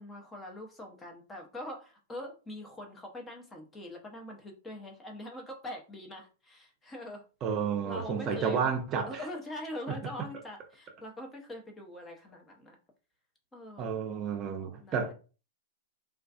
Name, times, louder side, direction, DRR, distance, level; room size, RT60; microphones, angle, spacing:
voice 1, 0.0-7.2 7.8-8.7 9.1-12.8 13.5-14.0 14.8-15.1, left 1 dB, 15° left, 0.7 m, -43 dB
voice 2, 7.4-9.2 13.8-15.1, right 6 dB, 35° right, 0.6 m, -31 dB
2.4 x 2.4 x 2.3 m
figure-of-eight pair, 105°, 0 cm